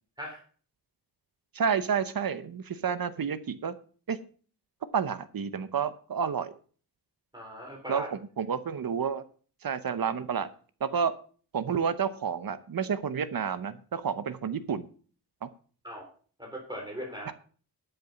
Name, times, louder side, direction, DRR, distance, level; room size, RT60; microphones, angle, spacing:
voice 1, 1.5-3.7 4.1-4.2 4.9-6.5 7.9-8.0 8.4-9.2 9.6-10.5 10.8-11.2 11.5-14.9 15.4-15.5, right 6 dB, 60° right, 13 dB, 0.9 m, -30 dB
voice 2, 7.3-8.1 15.8-16.1 16.4-17.3, equal, 10° right, 0 dB, 3.7 m, -39 dB
12.0 x 6.9 x 5.8 m, 0.41 s
wide cardioid pair, 170°, 40 cm